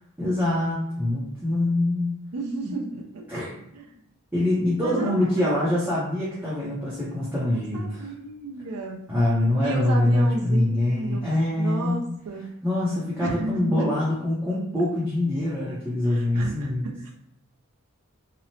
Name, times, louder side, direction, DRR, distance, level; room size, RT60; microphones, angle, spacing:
voice 1, 0.2-2.2 3.3-3.5 4.3-8.1 9.1-12.1 12.6-16.9, left 1 dB, 10° right, -9 dB, 0.5 m, -24 dB
voice 2, 2.3-3.2 3.7-3.9 4.8-5.5 7.5-9.0 9.6-12.6 13.2-13.9 16.0-17.1, right 2 dB, 90° right, 0 dB, 0.5 m, -33 dB
2.9 x 2.0 x 2.7 m, 0.74 s
head